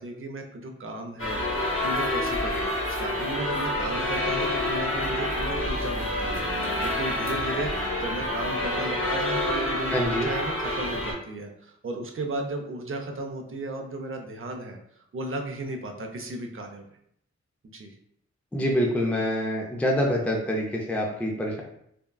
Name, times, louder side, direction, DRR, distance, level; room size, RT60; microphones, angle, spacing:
voice 1, 0.0-2.6 3.0-6.5 6.8-14.8 15.1-16.8 17.7-18.0, right 2 dB, 45° right, 3 dB, 0.5 m, -35 dB
sound 1, 1.2-11.1, left 1 dB, 45° left, 0.9 m, -28 dB
voice 2, 9.9-10.3 18.5-21.6, equal, 5° left, 0 dB, 0.4 m, -26 dB
3.5 x 2.2 x 2.2 m, 0.72 s
wide cardioid pair, 65°, 29 cm